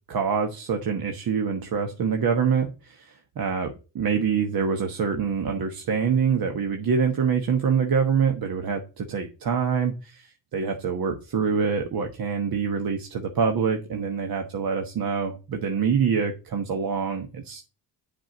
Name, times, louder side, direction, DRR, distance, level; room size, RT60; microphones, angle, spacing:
voice 1, 0.1-17.6, right 6 dB, 55° right, 1.2 m, -25 dB
7.5 x 4.5 x 6.5 m
supercardioid pair, 65°, 43 cm